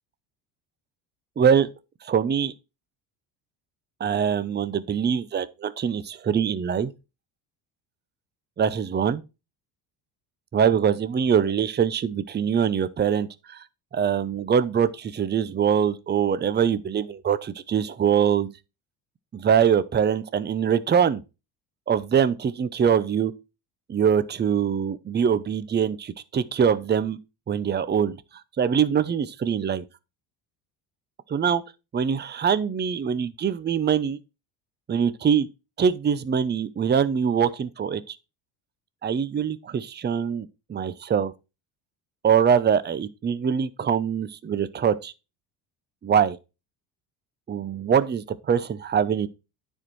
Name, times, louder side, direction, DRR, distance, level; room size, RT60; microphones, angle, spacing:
voice 1, 1.4-1.7 2.0-2.5 4.0-6.9 8.6-9.2 10.5-13.6 13.9-18.5 19.3-21.2 21.9-23.3 23.9-27.2 27.5-28.2 28.6-29.8 31.3-31.6 31.9-34.2 34.9-35.5 35.8-38.2 39.0-41.3 42.2-45.1 46.0-46.4 47.5-49.3, right 7 dB, 25° right, 0.7 m, -23 dB
9.7 x 4.5 x 4.6 m
supercardioid pair, 85°, 45 cm